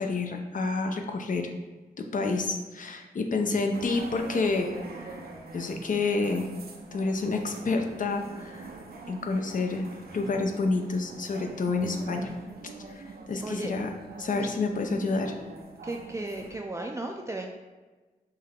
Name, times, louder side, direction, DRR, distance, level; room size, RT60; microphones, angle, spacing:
voice 1, 0.0-1.5 2.0-5.2 5.5-6.5 6.9-8.7 9.1-9.9 10.1-12.3 12.9-13.9 14.2-15.4, left 3 dB, 60° left, 4 dB, 0.6 m, -29 dB
sound 1, 3.7-16.6, right 3 dB, 80° right, 0.5 m, -44 dB
voice 2, 15.8-17.5, right 2 dB, 20° right, 1 dB, 0.3 m, -35 dB
5.6 x 2.1 x 3.5 m, 1.3 s
cardioid pair, 60°, 16 cm